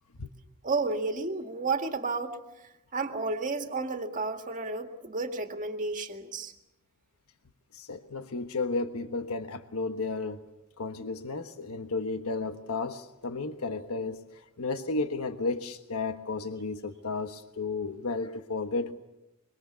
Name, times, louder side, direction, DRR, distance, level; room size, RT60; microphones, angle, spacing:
voice 1, 0.6-2.4 2.9-6.5, right 3 dB, 35° right, 5 dB, 2.0 m, -31 dB
voice 2, 7.7-10.4 10.8-14.2 14.6-18.9, left 3 dB, 75° left, 8 dB, 1.3 m, -33 dB
25.5 x 24.0 x 7.0 m, 0.91 s
head